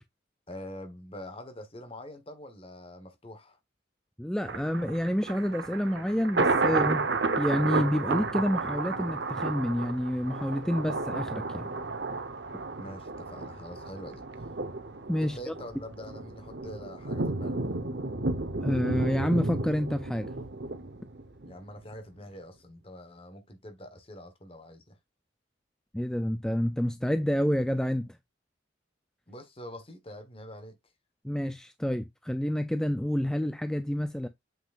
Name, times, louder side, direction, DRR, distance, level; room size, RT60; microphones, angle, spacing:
voice 1, 0.5-3.6 12.8-14.2 15.2-17.6 21.5-25.0 29.3-30.8, left 1 dB, 30° left, 1.3 m, -45 dB
voice 2, 4.2-7.1 7.4-11.7 15.1-15.5 18.6-20.3 25.9-28.2 31.2-34.3, equal, 5° left, 0.4 m, -28 dB
Thunder, 4.4-21.6 21.9-22.0, right 3 dB, 60° right, 1.0 m, -32 dB
7.7 x 6.0 x 2.5 m
head